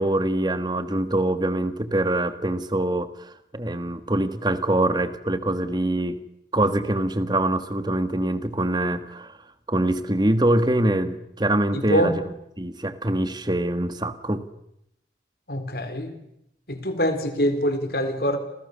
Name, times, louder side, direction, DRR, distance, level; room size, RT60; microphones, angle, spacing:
voice 1, 0.0-6.2 6.5-9.4 9.7-12.2 12.6-14.4, right 1 dB, 25° right, 10 dB, 1.6 m, -24 dB
voice 2, 11.7-12.2 15.5-16.1 16.7-18.4, equal, 55° left, 8 dB, 4.4 m, -24 dB
29.0 x 27.0 x 6.9 m, 0.80 s
head